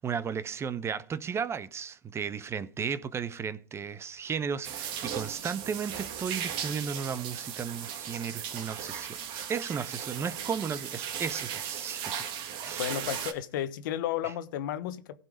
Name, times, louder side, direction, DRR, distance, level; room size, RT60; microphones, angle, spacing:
voice 1, 0.0-12.1 12.6-12.9 14.2-14.3, right 6 dB, 25° right, 0.9 m, -34 dB
sound 1, 4.6-13.3, right 8 dB, 50° right, 2.2 m, -37 dB
voice 2, 12.8-15.2, left 11 dB, 65° left, 1.2 m, -33 dB
15.5 x 5.6 x 5.1 m
hypercardioid pair, 105°, 11 cm